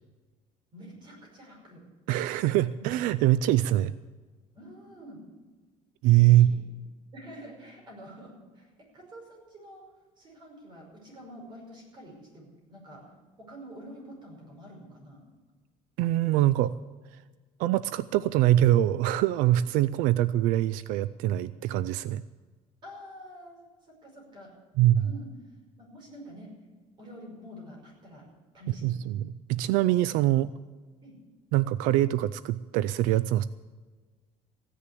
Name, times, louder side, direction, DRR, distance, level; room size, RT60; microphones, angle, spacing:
voice 1, 0.7-1.8 2.7-2.9 4.5-5.2 6.3-6.6 7.1-9.8 10.2-13.1 13.4-15.2 22.8-24.5 25.0-25.3 25.8-26.5 27.0-28.3 28.5-29.0 31.0-31.1, equal, 35° right, 0 dB, 5.4 m, -47 dB
voice 2, 2.1-3.9 6.0-6.5 16.0-16.8 17.6-22.2 24.8-25.1 28.8-30.5 31.5-33.4, right 14 dB, 90° right, 17 dB, 0.4 m, -23 dB
15.5 x 9.9 x 8.3 m, 1.3 s
cardioid pair, 160°, 13 cm